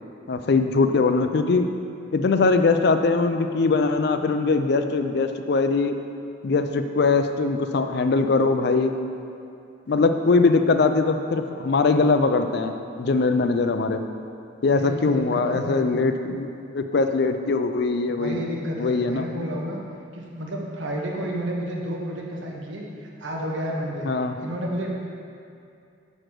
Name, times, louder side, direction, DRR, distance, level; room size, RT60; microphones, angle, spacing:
voice 1, 0.3-1.7 2.1-6.0 6.4-8.9 9.9-14.0 14.6-16.5 16.7-18.4 18.8-19.3 24.0-24.3, left 3 dB, 55° left, 8 dB, 0.4 m, -21 dB
voice 2, 14.6-16.0 18.1-19.8 20.1-24.1 24.4-24.9, equal, 75° right, -2 dB, 1.1 m, -31 dB
6.3 x 4.9 x 5.9 m, 2.5 s
head